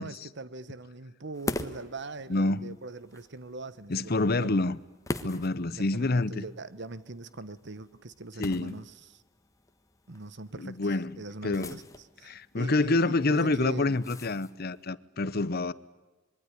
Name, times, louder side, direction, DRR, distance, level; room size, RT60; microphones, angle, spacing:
voice 1, 0.0-4.6 5.7-9.2 10.1-11.9 12.2-14.0, right 3 dB, 60° right, 1.2 m, -42 dB
sound 1, 1.3-14.9, left 1 dB, 15° left, 1.4 m, -43 dB
voice 2, 2.3-2.8 3.9-4.8 5.2-6.4 8.4-8.7 10.6-11.7 12.2-15.7, left 2 dB, 50° left, 0.9 m, -27 dB
26.0 x 22.0 x 10.0 m
head